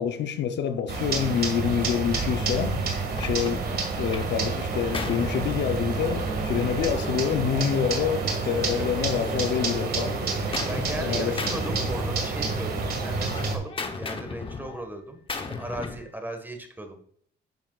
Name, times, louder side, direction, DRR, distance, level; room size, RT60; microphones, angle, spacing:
voice 1, 0.0-2.8 3.2-10.2 11.0-11.4, left 8 dB, 70° left, 0.7 m, -27 dB
sound 1, 0.9-13.6, right 4 dB, 60° right, 2.0 m, -28 dB
Gunshot gunfire, 2.1-2.3 2.9-4.4 4.6-6.4 7.3-9.1 9.5-11.1 11.4-12.6 12.9-16.1, left 4 dB, 30° left, 1.0 m, -37 dB
voice 2, 10.7-13.7 13.9-17.0, right 1 dB, 10° right, 1.5 m, -37 dB
10.5 x 7.0 x 2.4 m
cardioid pair, 105°, 19 cm